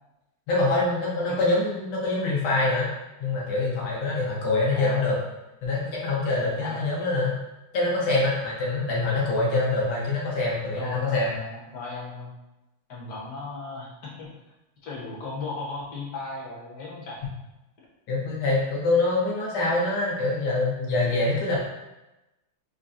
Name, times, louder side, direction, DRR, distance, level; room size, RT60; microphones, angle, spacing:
voice 1, 0.5-2.9 3.2-5.2 5.6-7.4 7.7-11.3 18.1-21.6, left 2 dB, 75° left, -5 dB, 1.9 m, -25 dB
voice 2, 4.7-5.1 6.4-6.8 10.8-12.3 12.9-14.3 14.8-17.2, left 3 dB, 50° left, -6 dB, 1.3 m, -36 dB
5.8 x 2.3 x 2.5 m, 0.99 s
omnidirectional pair, 2.4 m